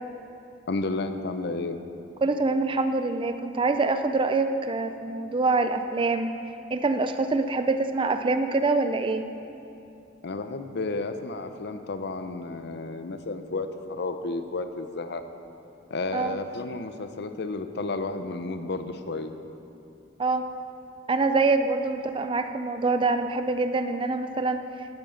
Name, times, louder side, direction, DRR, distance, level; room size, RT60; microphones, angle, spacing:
voice 1, 0.7-1.8 10.2-15.2 15.9-19.3, left 3 dB, 60° left, 8 dB, 0.7 m, -32 dB
voice 2, 2.2-6.3 6.7-9.3 16.1-16.4 20.2-20.4 21.1-24.7, right 3 dB, 25° right, 8 dB, 0.4 m, -25 dB
12.0 x 9.3 x 5.8 m, 2.7 s
head